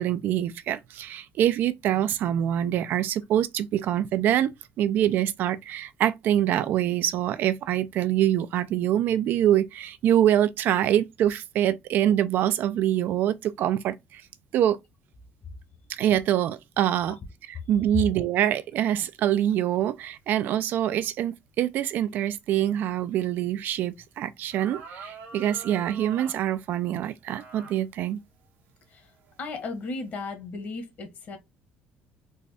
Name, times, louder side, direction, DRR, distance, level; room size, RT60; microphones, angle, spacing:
voice 1, 0.0-4.5 4.8-14.2 14.5-14.8 15.9-17.2 17.5-28.2, right 11 dB, 60° right, 0.4 m, -25 dB
sound 1, 23.9-24.0 24.5-26.4 27.3-27.8 28.4-28.5 29.2-29.5, right 5 dB, 80° right, 1.2 m, -43 dB
voice 2, 29.4-31.4, left 3 dB, 45° left, 1.2 m, -35 dB
4.1 x 2.3 x 3.4 m
cardioid pair, 135°, 4 cm